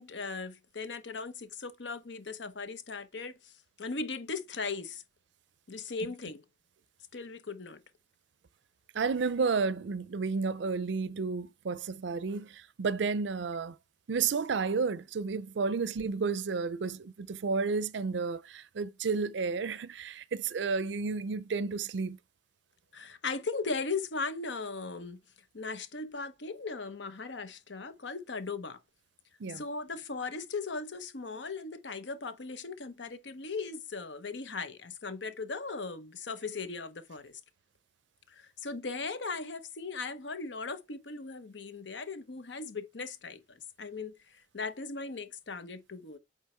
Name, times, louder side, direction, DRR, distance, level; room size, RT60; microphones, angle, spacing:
voice 1, 0.0-5.0 5.7-6.4 7.1-7.8 22.9-25.2 25.5-28.8 29.5-37.4 38.3-46.2, left 4 dB, 80° left, 0.9 m, -38 dB
voice 2, 8.9-13.8 14.1-22.2 29.4-29.6, right 4 dB, 80° right, 0.5 m, -31 dB
8.3 x 3.3 x 4.4 m
head